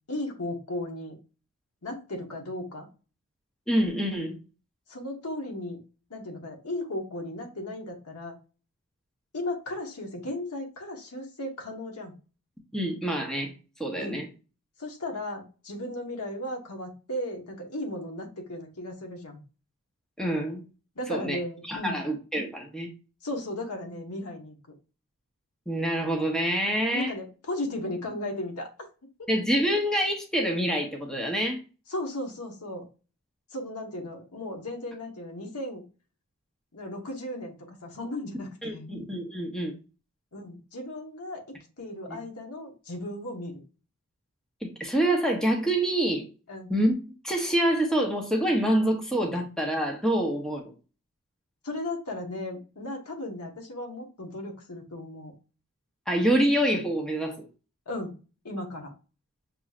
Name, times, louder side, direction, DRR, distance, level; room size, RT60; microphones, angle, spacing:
voice 1, 0.1-1.2 1.8-2.9 4.9-5.8 6.1-8.4 9.3-12.2 13.9-14.2 14.8-19.4 20.9-22.0 23.2-24.6 26.9-28.7 31.9-32.8 33.5-35.8 36.7-39.0 40.3-43.6 46.5-46.7 51.6-55.3 57.9-58.1 58.4-58.9, left 1 dB, 90° left, 1.3 m, -36 dB
voice 2, 3.7-4.4 12.7-13.5 13.8-14.3 20.2-20.6 21.1-21.4 21.6-22.9 25.7-27.1 29.3-31.6 38.6-39.7 42.1-42.2 44.6-46.3 46.7-46.9 47.2-50.7 56.1-57.5, right 1 dB, 5° left, 0.7 m, -26 dB
6.0 x 3.1 x 2.4 m
head